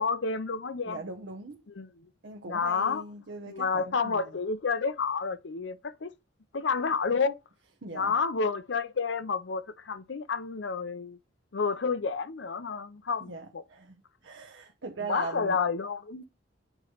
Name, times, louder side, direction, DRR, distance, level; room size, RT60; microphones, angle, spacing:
voice 1, 0.0-1.0 1.7-2.1 2.5-3.0 3.5-6.1 6.5-7.4 7.9-11.2 11.5-13.6 15.1-16.2, left 5 dB, 80° left, 0.6 m, -30 dB
voice 2, 0.9-1.6 2.2-4.4 7.8-8.1 13.2-14.0 14.2-15.6, right 3 dB, 75° right, 0.9 m, -40 dB
8.8 x 3.1 x 4.9 m
head